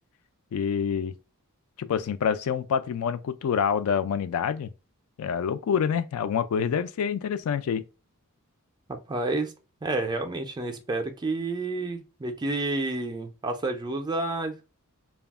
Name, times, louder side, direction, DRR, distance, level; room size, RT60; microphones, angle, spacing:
voice 1, 0.5-1.1 1.8-4.7 5.2-7.8, left 7 dB, 70° left, 0.3 m, -27 dB
voice 2, 8.9-9.5 9.8-14.6, right 2 dB, 20° right, 0.4 m, -30 dB
2.3 x 2.0 x 3.4 m
head